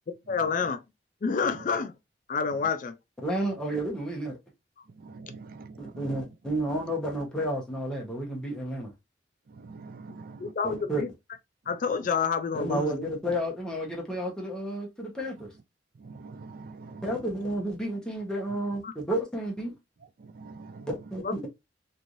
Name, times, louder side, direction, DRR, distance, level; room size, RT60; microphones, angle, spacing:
voice 1, 0.3-0.8 1.2-1.9 2.3-3.0 10.4-11.1 11.7-13.1 18.8-18.9 21.2-21.5, left 5 dB, 45° left, 0.4 m, -28 dB
voice 2, 3.2-4.4 5.8-8.9 10.6-11.0 12.5-15.5 17.0-19.7 20.9-21.5, right 1 dB, 5° left, 1.0 m, -31 dB
voice 3, 5.0-6.2 9.5-10.5 16.0-17.0 20.2-20.9, right 3 dB, 50° right, 0.4 m, -45 dB
3.1 x 2.6 x 2.5 m
head